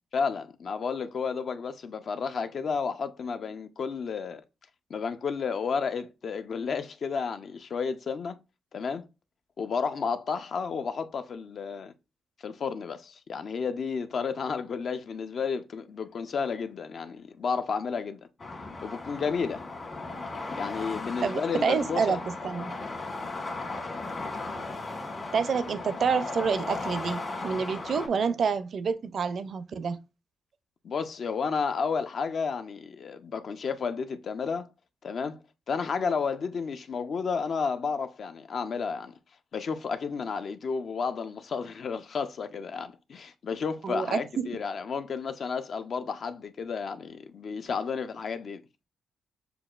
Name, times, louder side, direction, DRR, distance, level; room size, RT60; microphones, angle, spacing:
voice 1, 0.1-4.4 4.9-8.4 8.7-9.0 9.6-11.9 12.4-18.2 18.8-19.6 20.6-22.2 30.8-34.7 35.0-35.4 35.7-39.1 39.5-48.6, left 5 dB, 60° left, 0.4 m, -32 dB
sound 1, 18.4-28.1, left 3 dB, 45° left, 1.3 m, -36 dB
voice 2, 21.2-22.2 22.4-22.7 25.3-30.0 43.8-44.4, right 6 dB, 60° right, 0.4 m, -28 dB
6.7 x 2.2 x 2.4 m
cardioid pair, 80°, 0 cm